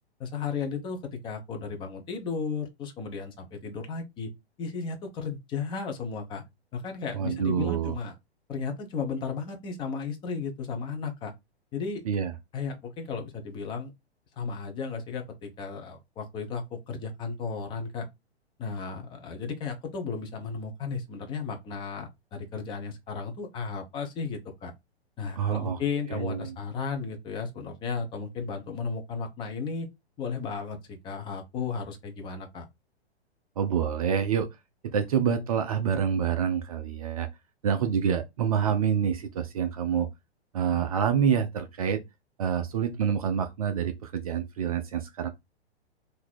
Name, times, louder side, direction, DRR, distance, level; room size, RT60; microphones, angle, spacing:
voice 1, 0.2-4.3 4.6-6.4 6.7-8.1 8.5-11.3 11.7-12.0 12.5-13.9 14.4-18.1 18.6-24.7 25.2-29.9 30.2-32.7, left 5 dB, 15° left, 0.6 m, -34 dB
voice 2, 7.1-8.0 12.1-12.3 25.4-25.8 26.1-26.5 33.6-34.5 34.9-37.3 37.6-40.1 40.5-42.0 42.4-45.3, right 8 dB, 35° right, 0.5 m, -27 dB
3.8 x 2.7 x 4.3 m
figure-of-eight pair, 115°, 33 cm